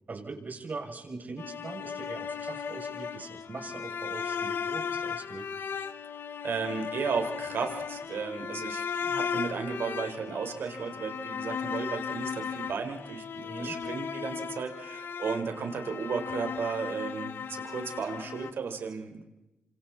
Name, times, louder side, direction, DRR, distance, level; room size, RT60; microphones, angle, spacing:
voice 1, 0.1-5.5 13.5-13.8, right 3 dB, 50° right, 1 dB, 6.9 m, -41 dB
sound 1, 1.4-18.5, left 7 dB, 70° left, 0.9 m, -36 dB
voice 2, 6.4-19.2, right 5 dB, 75° right, 5 dB, 4.5 m, -34 dB
28.0 x 25.5 x 4.2 m, 0.95 s
cardioid pair, 55°, 4 cm